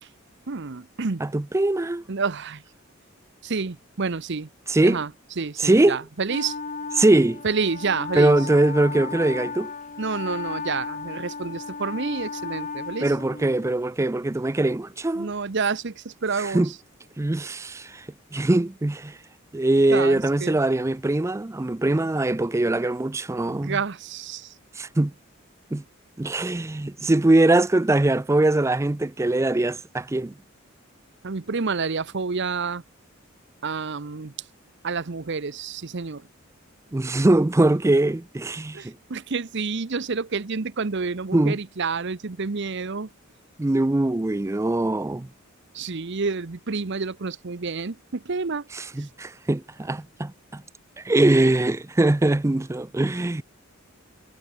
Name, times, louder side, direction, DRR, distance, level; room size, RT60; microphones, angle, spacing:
voice 1, 0.5-1.2 2.1-2.6 3.4-4.5 4.8-5.1 5.4-6.6 7.4-8.4 10.0-13.1 15.2-16.7 19.9-20.6 23.5-24.5 31.2-32.8 33.6-34.3 34.8-36.2 38.7-43.1 45.7-48.7, right 4 dB, 55° right, 0.8 m, -29 dB
voice 2, 1.2-2.0 4.7-5.0 5.6-6.0 7.0-7.4 8.1-9.7 13.0-15.3 16.4-16.7 17.2-18.1 18.3-19.2 19.5-23.8 24.8-25.1 25.7-25.8 26.2-30.3 36.9-38.9 41.3-41.6 43.6-45.3 48.7-50.6 51.0-53.4, right 2 dB, 15° right, 0.4 m, -22 dB
Wind instrument woodwind instrument, 6.3-13.8, left 4 dB, 35° left, 1.5 m, -35 dB
head